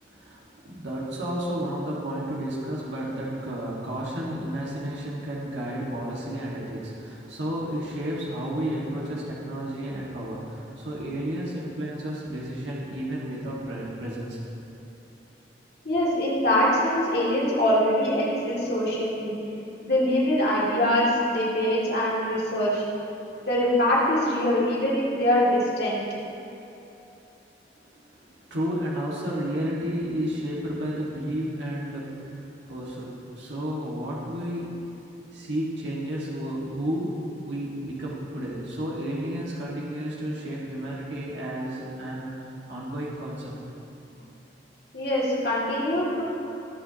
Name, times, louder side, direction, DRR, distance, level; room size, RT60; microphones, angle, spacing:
voice 1, 0.1-14.6 28.1-28.2 28.5-32.4 32.7-34.8 35.3-43.5 44.1-44.2, right 1 dB, 80° right, -5 dB, 1.8 m, -32 dB
voice 2, 15.8-19.3 19.8-22.8 23.4-26.0 44.9-46.2, left 1 dB, 55° left, -6 dB, 2.5 m, -23 dB
18.5 x 7.8 x 2.9 m, 3.0 s
head